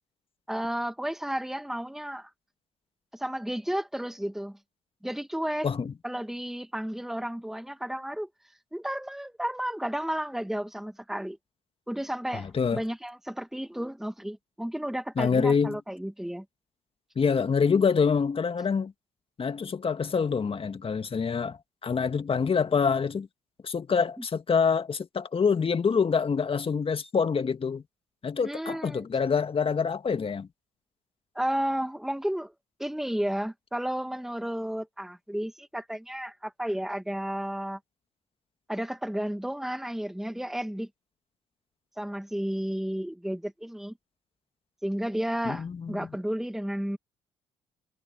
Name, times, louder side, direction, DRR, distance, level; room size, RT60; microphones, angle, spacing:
voice 1, 0.5-2.3 3.1-4.6 5.0-5.7 6.0-8.3 8.7-11.4 11.9-16.5 28.4-29.1 31.4-32.5 32.8-37.8 38.7-40.9 42.0-43.9 44.8-47.0, equal, ahead, 2.1 m, -32 dB
voice 2, 12.3-12.8 15.2-15.8 17.2-18.9 19.4-23.3 23.6-27.8 28.2-30.5 45.4-46.1, left 6 dB, 35° left, 2.1 m, -26 dB
hypercardioid pair, 55°, 15 cm